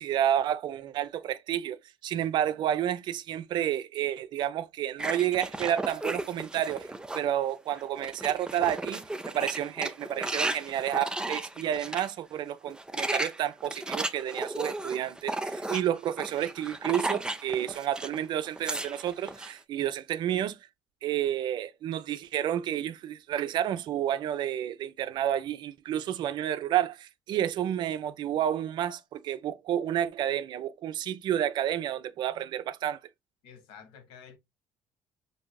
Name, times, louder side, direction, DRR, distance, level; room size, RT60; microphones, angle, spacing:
voice 1, 0.0-6.9 7.1-20.6 21.0-33.0, right 11 dB, 60° right, 0.5 m, -30 dB
sound 1, 5.0-7.3 7.7-12.1 12.7-18.2 18.5-19.5, right 2 dB, 10° right, 0.5 m, -35 dB
voice 2, 33.4-34.4, left 7 dB, 80° left, 0.9 m, -50 dB
4.6 x 2.6 x 2.2 m
supercardioid pair, 90°, 9 cm